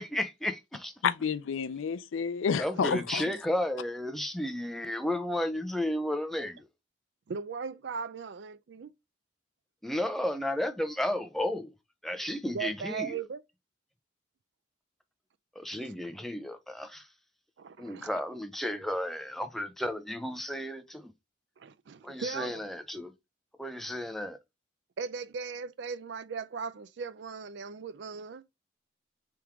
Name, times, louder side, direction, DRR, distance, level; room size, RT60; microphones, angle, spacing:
voice 1, 0.0-0.9 2.6-6.7 9.8-11.7 12.0-13.2 15.6-17.1 17.8-21.1 22.0-23.1 23.6-24.4, left 1 dB, ahead, 0.4 m, -33 dB
voice 2, 1.0-3.2, left 6 dB, 90° left, 0.4 m, -29 dB
voice 3, 7.3-8.9 12.5-13.4 15.7-15.9 17.6-18.2 21.6-22.6 25.0-28.4, right 5 dB, 65° right, 0.4 m, -38 dB
3.5 x 3.0 x 4.7 m
head